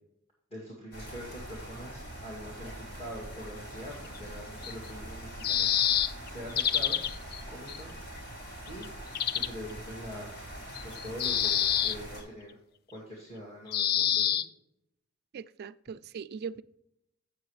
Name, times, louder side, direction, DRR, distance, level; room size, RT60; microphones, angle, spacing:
voice 1, 0.5-7.9 8.7-8.9 9.3-10.5 10.8-12.6 12.9-14.4, equal, 30° left, 2.2 m, -44 dB
sound 1, 0.9-12.2, right 1 dB, 85° left, 3.4 m, -43 dB
sound 2, 4.2-4.3 4.6-4.7 5.4-7.4 7.7-7.8 8.2-8.3 8.7-8.9 9.1-9.5 10.8-12.0 13.7-14.5, left 10 dB, 45° left, 0.3 m, -27 dB
voice 2, 15.3-16.6, right 6 dB, 45° right, 0.3 m, -40 dB
9.0 x 7.6 x 3.1 m
head